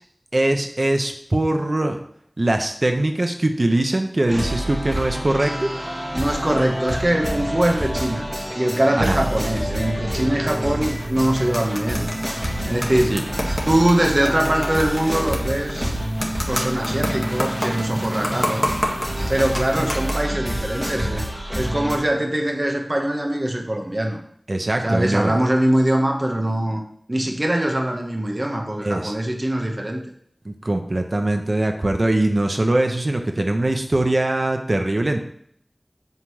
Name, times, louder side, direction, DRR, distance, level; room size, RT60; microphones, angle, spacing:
voice 1, 0.3-2.0 2.4-5.7 9.0-9.2 13.1-13.2 24.5-25.4 28.8-29.1 30.4-35.2, right 1 dB, 65° right, 4 dB, 1.1 m, -21 dB
sound 1, 4.3-22.0, equal, 15° right, 1.7 m, -27 dB
voice 2, 6.1-8.3 8.5-12.1 12.6-13.2 13.7-16.0 16.5-18.7 19.3-21.2 21.5-24.2 24.8-26.8 27.1-30.0, right 1 dB, 45° right, 2 dB, 1.3 m, -22 dB
sound 2, 10.9-20.1, equal, 15° left, 1.7 m, -30 dB
8.1 x 3.9 x 6.3 m, 0.65 s
wide cardioid pair, 50°, 0 cm